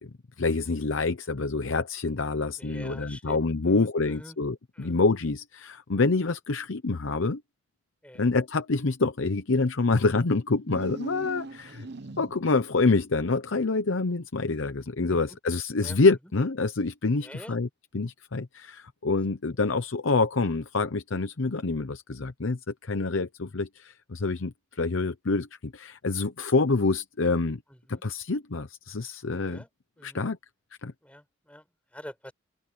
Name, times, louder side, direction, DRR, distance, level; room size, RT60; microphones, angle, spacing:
voice 1, 0.0-7.4 8.1-11.9 12.2-17.7 17.9-27.6 27.9-29.6 30.0-30.4 30.8-30.9, left 3 dB, 70° left, 0.8 m, -27 dB
voice 2, 2.6-4.4 4.7-5.0 8.0-8.3 15.1-15.4 15.8-16.0 17.2-17.6 27.7-28.0 29.4-29.7 30.0-30.2 31.0-32.3, equal, 5° left, 5.8 m, -46 dB
sound 1, 10.6-12.6, right 2 dB, 50° right, 0.8 m, -40 dB
open air
head